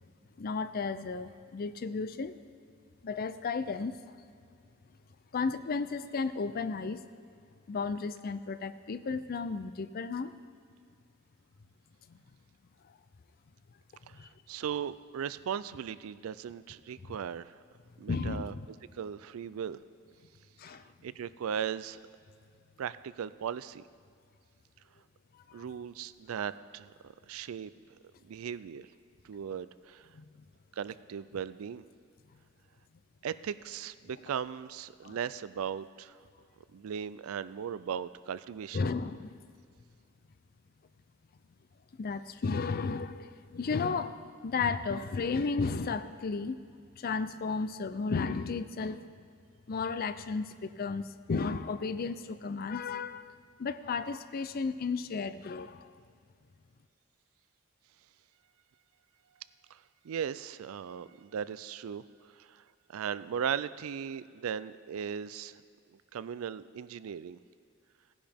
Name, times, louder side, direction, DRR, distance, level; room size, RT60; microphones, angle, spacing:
voice 1, 0.4-2.3 3.0-3.9 5.3-7.1 7.7-10.3 12.1-12.2 14.1-14.3 18.1-18.7 20.6-20.8 25.6-25.7 30.1-30.5 35.0-35.2 38.7-39.4 42.0-46.6 47.0-49.1 49.7-53.3 53.6-55.9, left 4 dB, 45° left, 13 dB, 0.4 m, -34 dB
voice 2, 14.1-17.6 18.0-18.5 18.9-19.8 21.0-22.0 22.8-23.8 25.5-27.7 28.2-28.9 29.2-30.1 30.8-31.9 33.2-36.2 36.7-38.8 59.7-59.8 60.0-62.0 62.4-62.6 62.9-65.6 66.1-67.4, right 8 dB, 75° right, 16 dB, 0.4 m, -37 dB
17.5 x 10.0 x 3.5 m, 2.3 s
head